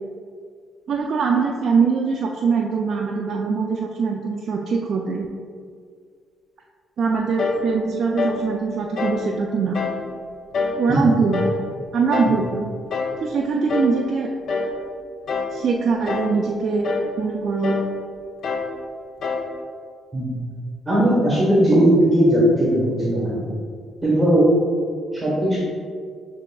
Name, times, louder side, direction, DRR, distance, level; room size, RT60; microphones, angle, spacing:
voice 1, 0.9-5.3 7.0-9.8 10.8-11.5 11.9-12.7 13.2-14.3 15.5-16.9 17.2-17.8, right 5 dB, 60° right, 0 dB, 0.3 m, -22 dB
sound 1, 7.4-7.7 8.2-8.5 9.0-9.3 9.7-10.0 10.5-10.9 11.3-11.6 12.1-12.4 12.9-13.2 13.7-14.0 14.5-14.8 15.3-15.6 16.1-16.4 16.8-17.1 17.6-17.9 18.4-18.7 19.2-19.5, left 4 dB, 65° left, 0.4 m, -26 dB
voice 2, 20.9-23.5 24.0-24.5 25.1-25.6, right 1 dB, 10° right, -7 dB, 1.3 m, -18 dB
6.3 x 3.3 x 2.3 m, 2.1 s
cardioid pair, 90°, 0 cm